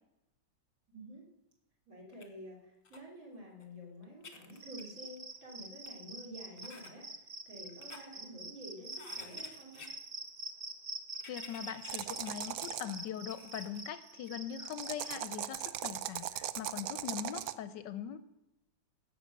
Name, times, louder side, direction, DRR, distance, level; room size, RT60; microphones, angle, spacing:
voice 1, 0.9-1.3 1.9-9.9, equal, 45° right, -2 dB, 4.0 m, -50 dB
sound 1, 2.1-2.3 2.8-3.0 3.6-3.7 4.0-5.3 5.9-6.0 6.6-6.9 7.6-8.0 8.9-9.9 11.1-13.8 14.3-14.4 15.3-15.7, left 4 dB, 30° left, 1.3 m, -53 dB
Cricket, 4.5-15.2, right 1 dB, 30° right, 0.8 m, -46 dB
voice 2, 11.2-18.2, left 9 dB, 75° left, 13 dB, 1.2 m, -41 dB
sound 2, 11.9-13.0 14.6-17.6, right 12 dB, 75° right, 0.8 m, -39 dB
16.0 x 6.6 x 6.4 m, 0.92 s
omnidirectional pair, 2.1 m